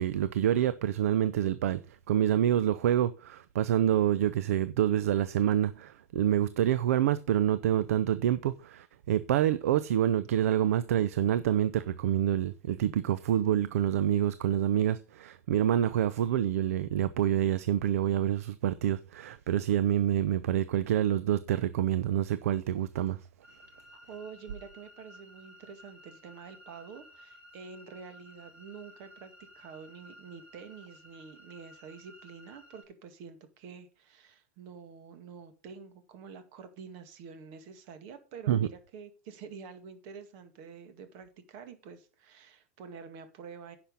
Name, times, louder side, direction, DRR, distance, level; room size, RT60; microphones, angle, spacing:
voice 1, 0.0-23.2 38.5-38.7, right 11 dB, 75° right, 0.6 m, -27 dB
sound 1, 23.4-32.8, equal, 20° right, 3.8 m, -55 dB
voice 2, 23.9-43.8, right 6 dB, 55° right, 2.1 m, -48 dB
10.0 x 6.1 x 5.4 m
hypercardioid pair, 110°, 8 cm